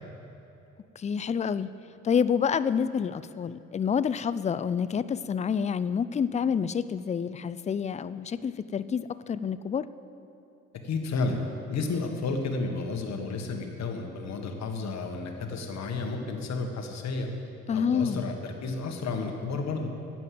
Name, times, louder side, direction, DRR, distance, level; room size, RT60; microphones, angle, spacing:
voice 1, 1.0-1.7 2.0-9.9 17.7-18.2, left 7 dB, 25° left, 15 dB, 0.3 m, -28 dB
voice 2, 10.8-11.4 11.7-17.3 17.7-19.9, left 3 dB, 65° left, 3 dB, 1.6 m, -32 dB
10.5 x 8.4 x 7.7 m, 2.8 s
cardioid pair, 90°, 30 cm